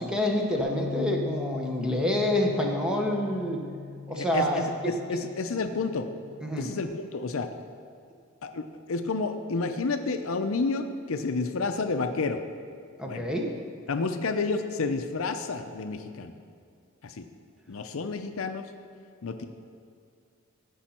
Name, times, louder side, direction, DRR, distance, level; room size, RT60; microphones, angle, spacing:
voice 1, 0.0-3.6 4.1-5.2 6.4-6.7 13.0-13.5, left 1 dB, 5° right, 0 dB, 1.0 m, -27 dB
Bass guitar, 0.6-6.8, left 4 dB, 35° left, 1.9 m, -39 dB
voice 2, 4.1-6.1 6.6-7.5 8.4-12.4 13.1-13.3 13.9-16.3 17.0-17.2 17.7-18.7 19.2-19.4, left 3 dB, 70° left, 7 dB, 0.6 m, -30 dB
16.0 x 5.4 x 4.4 m, 2.3 s
head